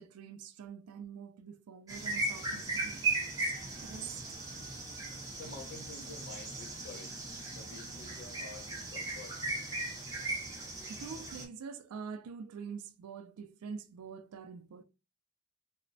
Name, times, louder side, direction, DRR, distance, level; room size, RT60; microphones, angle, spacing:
voice 1, 0.0-3.0 3.4-3.5 3.8-4.4 10.9-14.8, right 6 dB, 85° right, 0.3 m, -45 dB
sound 1, 1.9-11.4, right 2 dB, 15° right, 0.6 m, -37 dB
voice 2, 5.4-7.2 7.5-9.4, left 3 dB, 50° left, 0.7 m, -49 dB
3.0 x 2.0 x 2.6 m
head